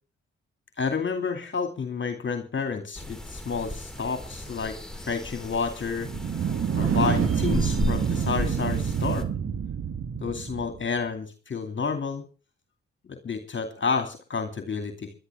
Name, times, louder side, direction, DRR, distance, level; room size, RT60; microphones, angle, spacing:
voice 1, 0.8-6.1 6.7-9.3 10.2-12.2 13.1-15.1, left 5 dB, 40° left, 6 dB, 2.6 m, -30 dB
sound 1, 2.9-9.2, left 2 dB, ahead, 2.7 m, -35 dB
sound 2, 6.0-10.9, right 7 dB, 50° right, 1.5 m, -27 dB
21.0 x 12.0 x 3.6 m, 0.35 s
hypercardioid pair, 45°, 30 cm